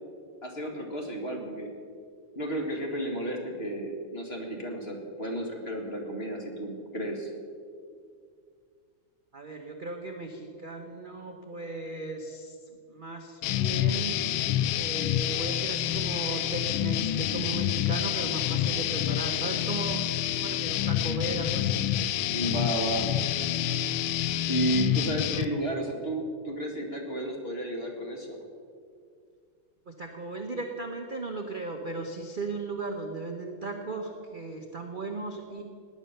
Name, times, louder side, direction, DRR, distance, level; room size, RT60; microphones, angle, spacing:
voice 1, 0.4-1.7 2.4-7.3 22.3-23.1 24.5-28.4, right 1 dB, 30° left, 1 dB, 2.3 m, -32 dB
voice 2, 9.3-12.6 12.9-20.0 20.3-21.8 25.2-25.4 29.9-35.6, right 3 dB, 35° right, 3 dB, 0.8 m, -36 dB
sound 1, 13.4-25.5, left 12 dB, 80° left, 1.4 m, -28 dB
18.0 x 10.0 x 6.7 m, 2.2 s
omnidirectional pair, 2.3 m